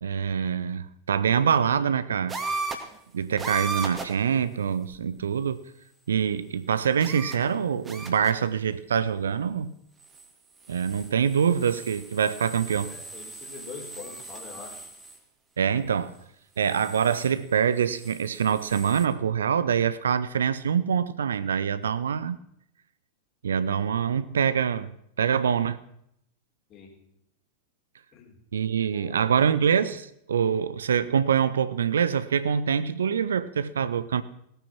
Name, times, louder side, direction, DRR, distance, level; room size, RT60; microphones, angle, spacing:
voice 1, 0.0-2.4 3.1-5.6 6.1-9.7 10.7-12.9 15.6-16.1 16.6-22.4 23.4-24.9 25.2-25.8 28.5-34.2, right 7 dB, 65° right, 0.6 m, -25 dB
sound 1, 2.3-3.0 3.4-4.2 4.9-5.0 7.0-7.5 7.8-8.4 10.0-10.3 10.6-15.2 16.6-17.3 17.8-19.1, right 3 dB, 15° right, 2.1 m, -37 dB
voice 2, 12.9-14.9 26.7-27.0 28.1-28.4 28.9-29.5, left 6 dB, 35° left, 3.8 m, -44 dB
17.0 x 9.1 x 6.0 m
figure-of-eight pair, 90°, 0 cm